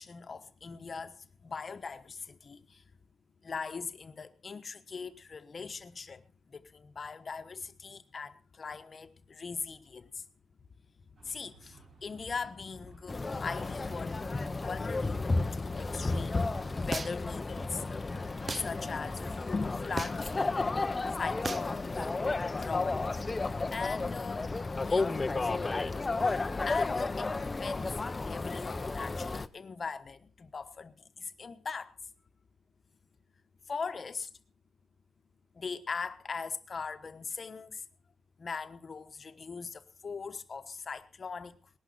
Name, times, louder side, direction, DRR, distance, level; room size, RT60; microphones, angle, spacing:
voice 1, 0.0-2.8 3.4-10.3 11.2-14.3 14.5-17.8 18.5-20.3 21.2-22.0 22.5-23.1 23.7-24.5 24.8-25.5 26.6-31.9 33.7-34.3 35.5-37.8 38.4-41.7, left 5 dB, 45° left, 1.2 m, -40 dB
sound 1, 11.2-20.6, right 3 dB, 65° right, 5.7 m, -58 dB
sound 2, 13.1-29.5, left 3 dB, 25° left, 0.7 m, -32 dB
sound 3, 16.9-17.4 18.5-18.7 20.0-20.3 21.4-21.7, right 3 dB, 35° right, 0.8 m, -35 dB
19.5 x 11.5 x 4.2 m
cardioid pair, 105°, 0 cm